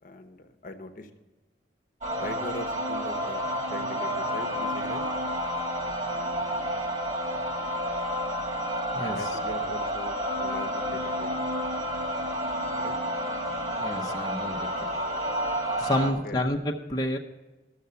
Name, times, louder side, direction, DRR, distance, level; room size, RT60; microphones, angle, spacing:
voice 1, 0.0-1.1 2.2-5.0 9.1-11.3 12.8-12.9 16.0-16.5, left 2 dB, 50° left, 7 dB, 0.9 m, -40 dB
sound 1, 2.0-16.1, equal, 40° right, 2.0 m, -30 dB
voice 2, 13.8-14.9 15.8-17.2, left 1 dB, 20° left, 0 dB, 0.7 m, -29 dB
13.0 x 6.7 x 6.8 m, 1.1 s
head